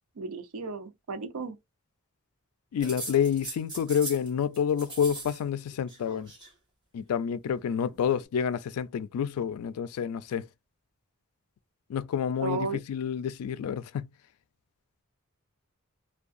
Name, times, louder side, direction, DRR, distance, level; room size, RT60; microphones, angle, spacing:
voice 1, 0.2-1.6 12.4-12.8, right 3 dB, 80° right, 0.5 m, -34 dB
voice 2, 2.7-6.3 6.9-10.5 11.9-14.1, left 8 dB, 85° left, 0.3 m, -29 dB
sound 1, 2.8-4.3 4.5-5.4 5.7-6.5 7.6-8.2, right 2 dB, 20° right, 1.0 m, -41 dB
2.6 x 2.2 x 2.4 m
head